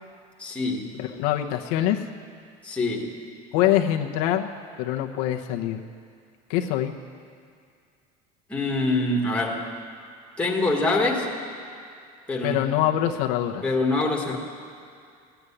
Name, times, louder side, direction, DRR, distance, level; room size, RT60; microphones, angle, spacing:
voice 1, 0.4-0.9 2.6-3.1 8.5-9.6 10.4-11.3 12.3-12.6 13.6-14.4, left 2 dB, 5° left, -1 dB, 1.8 m, -24 dB
voice 2, 1.0-2.0 3.5-4.5 4.8-5.8 6.5-6.9 12.4-13.6, left 12 dB, 80° left, 3 dB, 0.9 m, -24 dB
17.0 x 8.0 x 9.9 m, 2.3 s
cardioid pair, 165°, 18 cm